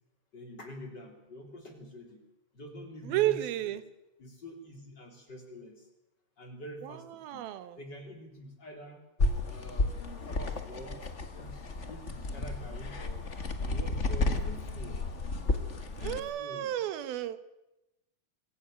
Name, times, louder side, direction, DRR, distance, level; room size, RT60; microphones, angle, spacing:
voice 1, 0.3-2.2 2.5-3.8 4.2-5.9 6.4-7.5 7.8-9.0 9.5-11.0 11.4-13.3 13.6-15.0 16.0-16.7, equal, 30° left, 4 dB, 3.8 m, -46 dB
voice 2, 3.0-3.8 6.8-7.8 15.5-15.6 16.0-17.4, right 13 dB, 85° right, 13 dB, 3.0 m, -32 dB
sound 1, 9.2-16.2, left 2 dB, 45° left, 0.9 m, -32 dB
24.5 x 16.5 x 9.0 m, 0.94 s
omnidirectional pair, 4.2 m